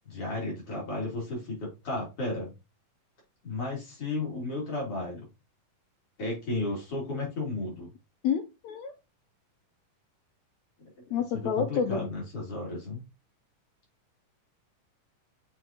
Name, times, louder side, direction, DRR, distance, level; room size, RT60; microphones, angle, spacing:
voice 1, 0.0-2.5 3.4-5.3 6.2-7.9 10.8-13.0, left 2 dB, 45° left, -4 dB, 3.9 m, -34 dB
voice 2, 8.2-8.9 11.1-12.0, left 7 dB, 85° left, 7 dB, 1.5 m, -29 dB
8.1 x 4.5 x 2.9 m, 0.26 s
omnidirectional pair, 3.8 m